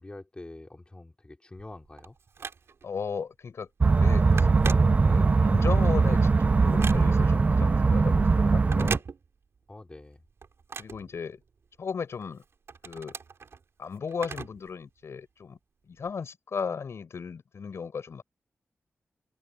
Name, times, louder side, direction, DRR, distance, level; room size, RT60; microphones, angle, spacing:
voice 1, 0.0-2.1 9.7-10.2, left 2 dB, 20° left, 3.3 m, -45 dB
Telephone, 1.6-3.0 3.5-3.7 3.9-5.4 5.9-7.4 8.6-9.7 10.0-11.8 12.2-14.7 15.0-15.1 16.0-16.1, right 5 dB, 70° right, 5.0 m, -39 dB
voice 2, 2.8-3.7 4.0-9.0 10.8-11.4 11.8-12.4 12.8-13.2 13.8-15.6 15.9-18.2, left 6 dB, 75° left, 7.0 m, -36 dB
sound 1, 3.8-9.0, right 4 dB, 30° right, 0.3 m, -21 dB
open air
wide cardioid pair, 135°, 5 cm